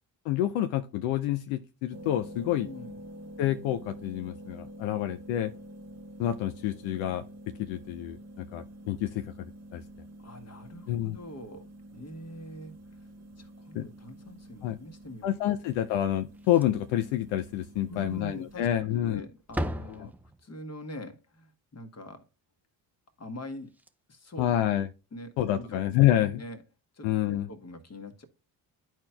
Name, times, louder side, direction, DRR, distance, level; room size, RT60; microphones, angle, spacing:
voice 1, 0.3-2.7 3.4-5.5 6.2-7.2 7.6-9.8 10.9-11.2 13.7-13.9 14.6-14.8 15.2-19.2 24.4-24.9 25.4-26.4 27.0-27.5, left 12 dB, 70° left, 0.6 m, -28 dB
sound 1, 1.9-18.8, right 1 dB, 30° right, 0.8 m, -48 dB
voice 2, 2.5-3.0 10.2-12.7 13.4-15.5 17.9-20.1 20.4-22.2 23.2-23.7 24.1-24.5 25.1-25.8 26.3-26.6 26.9-28.3, left 1 dB, 30° left, 1.4 m, -43 dB
Slam, 16.3-17.0 17.3-17.4 17.8-17.9 18.8-19.1 19.4-20.7 23.4-23.5 23.7-23.9 25.4-25.6, equal, 5° right, 0.4 m, -37 dB
11.5 x 4.5 x 2.2 m
hypercardioid pair, 50°, 50 cm